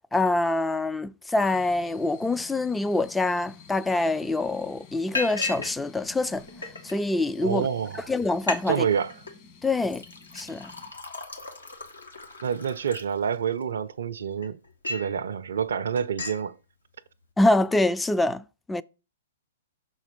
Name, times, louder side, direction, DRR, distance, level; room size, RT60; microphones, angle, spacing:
voice 1, 0.1-6.4 6.8-7.7 8.1-8.9 9.6-10.0 10.3-10.7 17.4-18.8, left 2 dB, 5° left, 0.3 m, -25 dB
sound 1, 1.4-10.9, left 6 dB, 40° left, 1.4 m, -51 dB
Liquid, 4.0-4.1 4.4-4.7 5.1-5.7 6.0-6.9 7.6-7.7 8.0-8.1 8.3-8.6 8.9-9.3 9.8-13.6 14.1-15.1 15.5-15.7 16.0-16.4, left 3 dB, 85° left, 1.4 m, -35 dB
voice 2, 7.4-8.1 8.7-9.1 12.4-14.6 14.8-16.6, right 7 dB, 70° right, 0.4 m, -28 dB
6.2 x 3.9 x 5.0 m
figure-of-eight pair, 110°, 0 cm